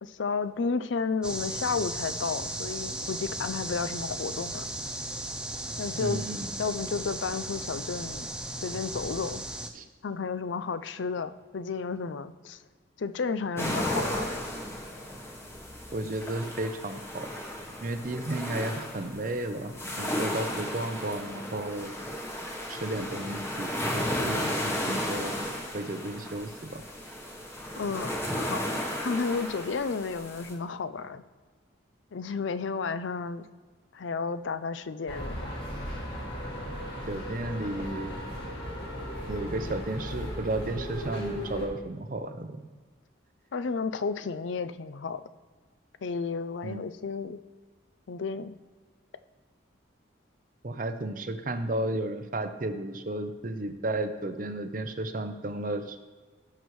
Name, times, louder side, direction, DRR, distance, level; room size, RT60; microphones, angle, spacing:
voice 1, 0.0-4.7 5.8-6.3 6.6-8.3 8.6-9.5 10.0-12.6 13.0-14.5 27.8-28.7 29.0-31.2 32.1-33.4 33.9-35.4 43.5-45.2 46.0-47.4 48.1-48.6, left 5 dB, 75° left, 12 dB, 0.5 m, -32 dB
sound 1, 1.2-9.7, right 1 dB, 5° right, 0.4 m, -36 dB
voice 2, 6.0-6.5 9.7-9.9 15.9-17.3 17.8-21.9 22.7-25.3 25.7-26.8 37.1-38.1 39.3-42.7 46.6-46.9 50.6-56.0, right 1 dB, 45° right, 9 dB, 0.7 m, -33 dB
sound 2, 13.6-30.5, equal, 15° left, 1.1 m, -34 dB
sound 3, 35.1-41.7, equal, 60° left, 2.1 m, -36 dB
16.5 x 6.1 x 3.2 m, 1.4 s
head